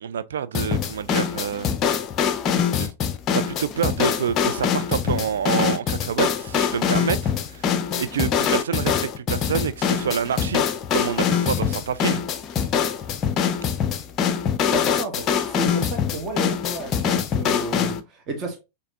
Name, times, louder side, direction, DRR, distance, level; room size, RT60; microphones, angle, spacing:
voice 1, 0.0-1.7 2.8-2.9 3.3-10.6 10.9-12.2, right 8 dB, 65° right, 0.3 m, -27 dB
sound 1, 0.5-18.0, left 7 dB, 30° left, 0.5 m, -23 dB
voice 2, 14.7-18.6, right 3 dB, 30° right, 1.1 m, -33 dB
6.3 x 2.7 x 2.6 m
figure-of-eight pair, 90°, 0 cm